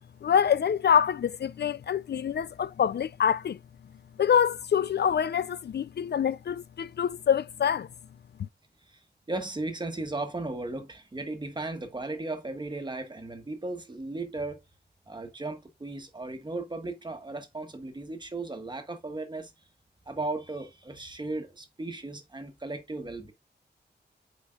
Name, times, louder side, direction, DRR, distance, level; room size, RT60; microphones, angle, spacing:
voice 1, 0.2-3.6 4.2-7.9, left 8 dB, 65° left, 0.4 m, -25 dB
voice 2, 9.3-14.6 15.1-19.5 20.1-23.3, right 2 dB, 25° right, 1.4 m, -36 dB
8.4 x 5.2 x 2.4 m
wide cardioid pair, 150°, 18 cm